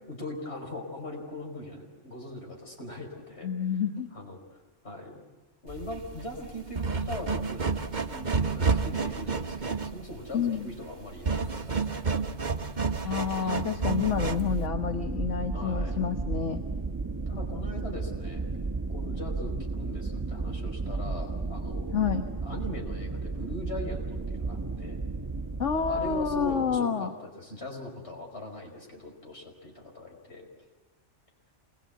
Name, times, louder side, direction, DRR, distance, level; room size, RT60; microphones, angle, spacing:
voice 1, 0.1-3.8 4.1-4.4 4.8-5.2 5.6-7.7 8.0-12.0 13.8-13.9 15.5-16.0 17.3-18.5 18.9-22.2 22.4-25.0 25.9-30.5, left 1 dB, 60° left, 1 dB, 5.6 m, -40 dB
voice 2, 3.4-4.1 10.3-10.7 13.0-16.6 21.9-22.2 25.6-27.1, left 7 dB, 80° left, 6 dB, 1.5 m, -28 dB
sound 1, 5.7-14.6, right 4 dB, 40° right, 1.3 m, -30 dB
sound 2, 13.8-26.8, right 3 dB, 15° right, 1.1 m, -33 dB
27.5 x 22.0 x 8.4 m, 1.2 s
omnidirectional pair, 1.2 m